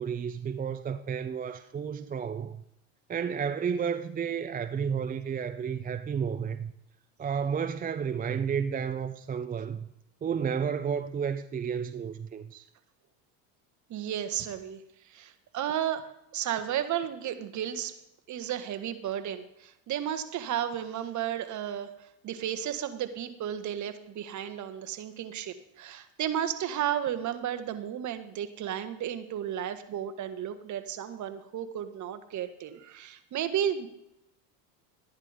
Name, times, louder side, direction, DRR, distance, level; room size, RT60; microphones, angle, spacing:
voice 1, 0.0-2.6 3.1-6.7 7.2-9.9 10.2-12.7, right 7 dB, 20° right, 0.6 m, -32 dB
voice 2, 13.9-14.8 15.1-16.0 16.3-18.0 18.3-33.9, right 10 dB, 45° right, 1.5 m, -33 dB
13.0 x 10.5 x 5.1 m
supercardioid pair, 100°, 42 cm